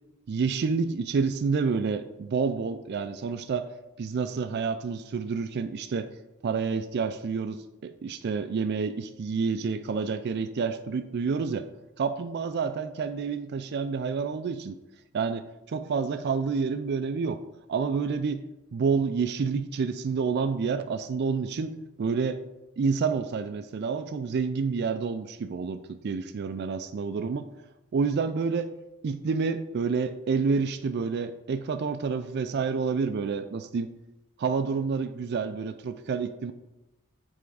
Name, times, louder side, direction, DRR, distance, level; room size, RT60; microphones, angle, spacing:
voice 1, 0.3-3.7 4.0-6.1 6.4-11.7 12.0-14.8 15.1-17.4 17.7-18.4 18.7-22.4 22.8-27.5 27.9-28.7 29.0-33.9 34.4-36.5, right 5 dB, 50° right, 10 dB, 0.3 m, -29 dB
9.0 x 3.4 x 4.7 m, 0.95 s
head